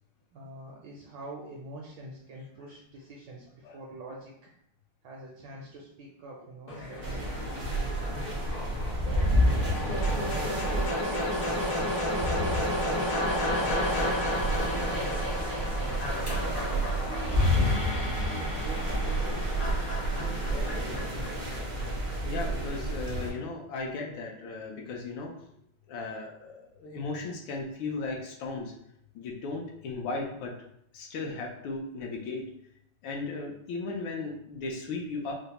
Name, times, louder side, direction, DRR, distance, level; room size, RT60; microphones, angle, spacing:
voice 1, 0.3-4.3 5.0-8.5 9.0-11.3 11.5-13.8 14.5-16.3 17.0-17.6 18.1-19.8 20.1-21.6, right 2 dB, 75° right, -2 dB, 1.1 m, -45 dB
sound 1, 6.7-22.7, left 1 dB, 55° left, 0.8 m, -33 dB
sound 2, 7.0-23.3, equal, 50° right, 0.5 m, -30 dB
sound 3, 13.1-20.2, right 1 dB, 30° left, 0.4 m, -41 dB
voice 2, 22.2-25.3 25.9-28.7 29.1-30.5 30.9-32.4 33.0-35.3, left 3 dB, 75° left, 0 dB, 1.3 m, -36 dB
5.1 x 2.0 x 2.8 m, 0.73 s
omnidirectional pair, 2.4 m